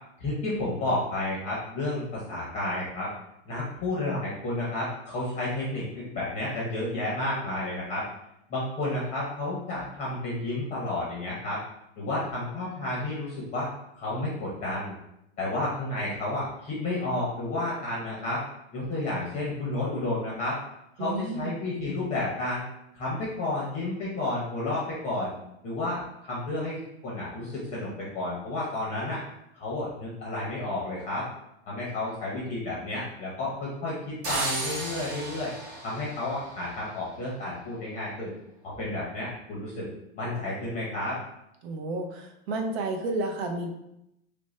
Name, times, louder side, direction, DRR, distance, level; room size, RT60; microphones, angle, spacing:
voice 1, 0.2-3.1 3.5-8.0 8.5-11.6 12.0-13.7 14.0-15.0 15.4-18.4 18.7-20.6 21.0-22.6 22.9-25.3 25.6-29.2 29.5-31.3 31.7-35.5 35.8-38.3 38.8-39.9 40.1-41.2, left 2 dB, 20° left, -6 dB, 0.7 m, -31 dB
voice 2, 21.0-21.6 41.6-43.7, right 2 dB, 70° right, 4 dB, 0.7 m, -31 dB
sound 1, 34.2-37.1, right 2 dB, 30° right, 0.6 m, -34 dB
3.2 x 2.6 x 3.1 m, 0.82 s
supercardioid pair, 155°, 33 cm